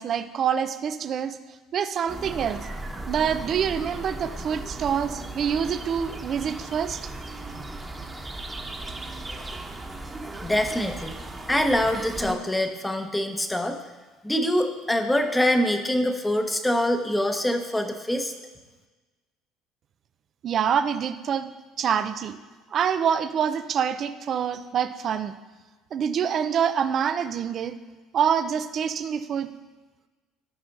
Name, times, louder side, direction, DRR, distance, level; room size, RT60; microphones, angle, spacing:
voice 1, 0.0-1.4 1.7-2.6 3.1-7.1 20.4-21.5 21.8-22.4 22.7-25.3 25.9-27.8 28.1-29.5, right 8 dB, 50° right, 11 dB, 0.5 m, -26 dB
sound 1, 2.1-12.4, right 2 dB, 20° right, 1.2 m, -37 dB
voice 2, 10.4-11.1 11.5-13.8 14.2-18.3, left 1 dB, 10° left, 5 dB, 1.1 m, -24 dB
16.5 x 5.6 x 2.6 m, 1.3 s
hypercardioid pair, 65°, 0 cm